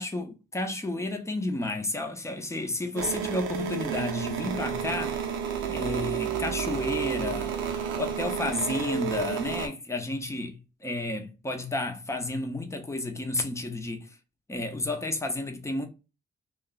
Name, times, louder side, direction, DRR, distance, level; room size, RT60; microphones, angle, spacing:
voice 1, 0.0-5.2 5.7-14.2 14.5-15.9, left 2 dB, 15° left, 0.7 m, -32 dB
sound 1, 2.9-9.7, right 8 dB, 90° right, 0.7 m, -31 dB
2.3 x 2.2 x 3.8 m
cardioid pair, 90°, 20 cm